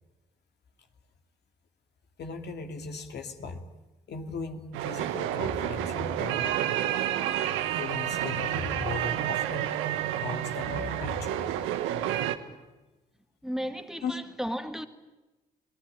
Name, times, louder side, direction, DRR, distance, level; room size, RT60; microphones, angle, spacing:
voice 1, 2.2-3.7 4.1-6.6 7.8-9.7 10.2-11.5 14.0-14.2, left 4 dB, 60° left, 2.6 m, -37 dB
sound 1, 4.7-12.4, right 11 dB, 80° right, 1.5 m, -30 dB
voice 2, 13.4-14.9, equal, ahead, 2.2 m, -34 dB
26.5 x 19.0 x 9.1 m
hypercardioid pair, 45°, 20 cm